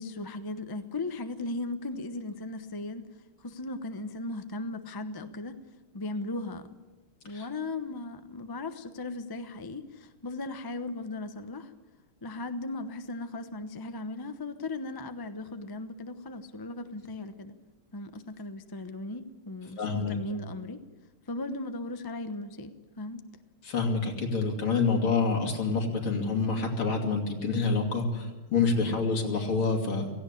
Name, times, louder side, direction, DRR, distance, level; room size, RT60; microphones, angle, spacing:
voice 1, 0.0-3.1 3.4-5.6 5.9-6.7 7.2-11.7 12.2-17.6 17.9-20.8 21.3-23.2, left 2 dB, 35° left, 9 dB, 0.3 m, -37 dB
voice 2, 19.8-20.2 23.6-30.1, left 4 dB, 70° left, 2 dB, 3.7 m, -27 dB
17.5 x 16.0 x 10.0 m, 1.1 s
omnidirectional pair, 2.4 m